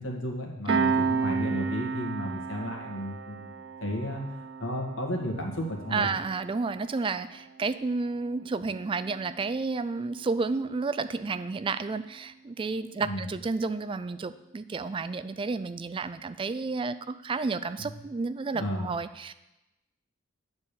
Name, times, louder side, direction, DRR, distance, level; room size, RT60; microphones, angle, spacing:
voice 1, 0.0-4.2 4.6-6.1 13.0-13.3 17.8-17.9 18.5-18.9, equal, 75° left, 0 dB, 1.8 m, -33 dB
Piano, 0.7-11.8, right 5 dB, 75° right, 0.6 m, -34 dB
voice 2, 5.9-19.3, right 4 dB, 25° right, 13 dB, 0.3 m, -31 dB
9.6 x 4.1 x 6.8 m, 0.94 s
head